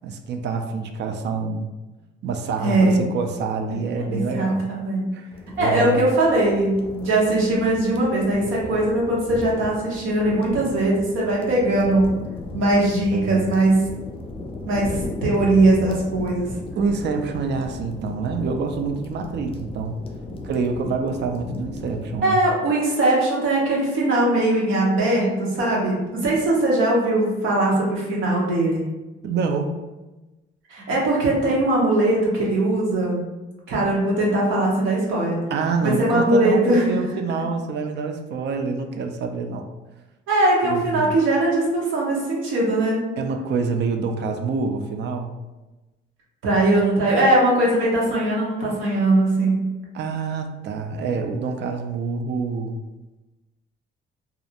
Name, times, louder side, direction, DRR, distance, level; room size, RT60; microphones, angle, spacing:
voice 1, 0.0-1.7 2.2-4.7 5.1-5.3 5.6-6.0 13.1-13.5 16.8-20.0 20.4-22.4 29.2-29.7 35.5-39.7 40.6-41.1 43.2-45.3 49.9-52.8, right 4 dB, 60° right, 5 dB, 0.4 m, -26 dB
voice 2, 2.6-3.0 4.1-5.1 5.6-12.1 12.5-13.8 14.7-16.5 22.2-28.8 30.7-33.2 33.7-35.4 35.8-37.0 40.3-43.0 46.4-49.6, right 1 dB, 85° right, -4 dB, 0.8 m, -20 dB
sound 1, 5.3-22.2, left 2 dB, 30° left, 0.4 m, -36 dB
2.4 x 2.0 x 2.8 m, 1.1 s
cardioid pair, 90°, 20 cm